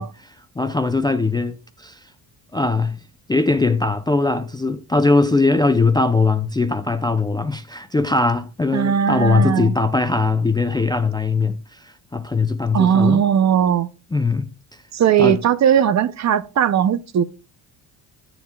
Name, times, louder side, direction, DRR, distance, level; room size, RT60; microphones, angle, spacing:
voice 1, 0.0-2.0 2.5-3.0 3.3-13.2 14.1-14.5 15.2-15.4, left 3 dB, 10° left, 0.4 m, -20 dB
voice 2, 8.7-9.7 12.7-13.9 14.9-17.2, right 8 dB, 40° right, 0.5 m, -18 dB
12.0 x 7.0 x 2.2 m
cardioid pair, 110°, 42 cm